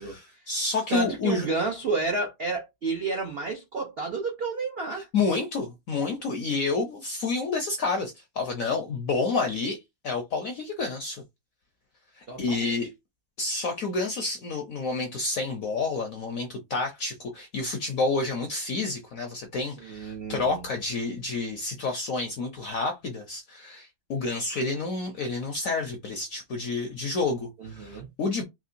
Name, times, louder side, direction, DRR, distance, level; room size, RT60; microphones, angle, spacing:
voice 1, 0.0-1.5 4.9-11.2 12.2-12.9 13.4-28.4, left 3 dB, 70° left, 0.8 m, -29 dB
voice 2, 0.9-5.1 12.3-12.8 19.8-20.6 27.6-28.1, right 3 dB, 90° right, 0.5 m, -31 dB
3.5 x 2.9 x 2.5 m
omnidirectional pair, 2.1 m